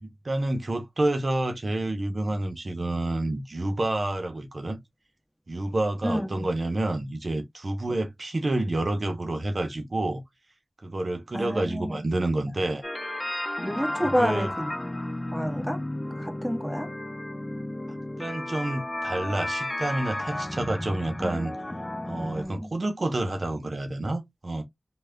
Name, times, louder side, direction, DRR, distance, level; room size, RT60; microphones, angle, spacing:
voice 1, 0.0-4.8 5.5-10.2 10.8-12.8 14.2-14.5 17.9-21.5 22.1-24.6, right 2 dB, 60° right, 0.7 m, -29 dB
voice 2, 6.0-6.5 11.3-12.0 13.6-14.7 15.3-15.8 16.2-16.9 21.2-21.3 22.3-22.7, equal, ahead, 1.4 m, -29 dB
sound 1, 12.8-22.4, left 1 dB, 25° left, 0.6 m, -33 dB
3.2 x 2.3 x 3.5 m
cardioid pair, 40°, 0 cm